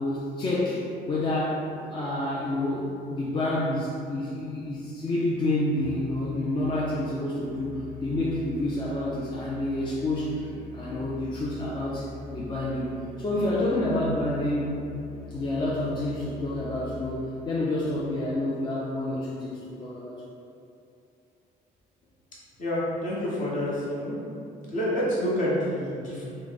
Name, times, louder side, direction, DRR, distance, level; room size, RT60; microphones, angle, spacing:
voice 1, 0.0-14.8 15.3-20.2, left 1 dB, 25° left, -6 dB, 0.4 m, -29 dB
Musical instrument, 5.7-17.6, left 3 dB, 85° left, 0.9 m, -44 dB
voice 2, 22.6-24.2 24.7-26.2, equal, 50° left, -7 dB, 1.1 m, -28 dB
3.0 x 2.0 x 3.9 m, 2.6 s
cardioid pair, 110°, 17 cm